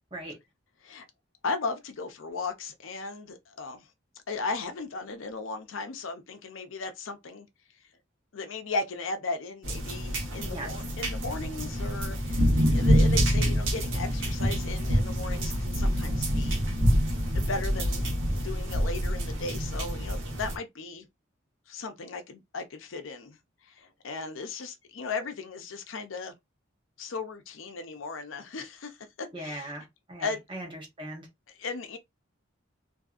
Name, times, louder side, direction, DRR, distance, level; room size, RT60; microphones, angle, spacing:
voice 1, 1.4-3.9 4.3-7.5 8.3-16.6 17.3-21.1 21.7-23.4 23.6-26.3 27.0-29.7 30.2-30.4 31.5-32.0, left 3 dB, 80° left, 0.6 m, -36 dB
sound 1, 9.6-20.5, equal, 80° right, 1.0 m, -26 dB
voice 2, 29.3-31.3, right 1 dB, 25° right, 0.9 m, -39 dB
2.6 x 2.6 x 2.4 m
head